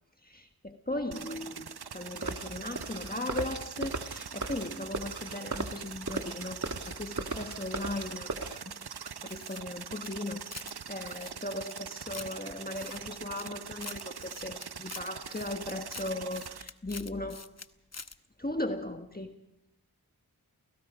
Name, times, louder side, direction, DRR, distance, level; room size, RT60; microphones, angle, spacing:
voice 1, 0.2-8.8 9.2-17.5 18.4-19.3, left 1 dB, 25° left, 5 dB, 1.5 m, -38 dB
sound 1, 1.1-16.6, right 7 dB, 80° right, 0.7 m, -43 dB
sound 2, 2.2-8.6, right 3 dB, 50° right, 1.5 m, -38 dB
sound 3, 9.2-10.8 11.0-12.3 12.7-13.5 13.8-17.7 17.9-18.2, left 4 dB, 40° left, 0.9 m, -46 dB
29.0 x 17.5 x 5.1 m, 0.83 s
wide cardioid pair, 45°, 38 cm